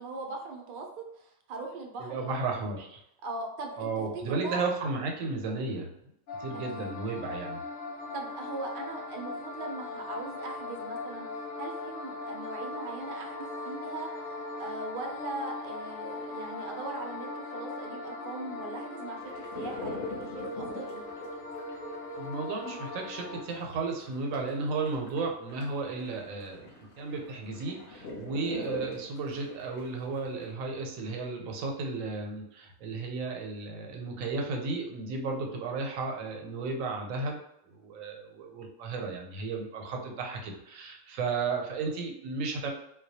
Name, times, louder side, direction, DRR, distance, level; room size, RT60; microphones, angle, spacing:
voice 1, 0.0-2.5 3.2-3.9 4.3-4.6 6.5-6.9 8.1-11.3 11.6-14.2 14.6-21.1, right 3 dB, 65° right, 1 dB, 0.5 m, -40 dB
voice 2, 2.0-3.0 3.8-5.9 6.4-7.6 22.2-26.6 27.0-37.4 37.7-42.7, right 4 dB, 90° right, 1 dB, 1.0 m, -34 dB
sound 1, 6.3-23.4, left 3 dB, 90° left, 1.0 m, -39 dB
sound 2, 19.2-30.5, left 2 dB, 50° left, 0.8 m, -43 dB
2.2 x 2.2 x 2.7 m, 0.80 s
omnidirectional pair, 1.3 m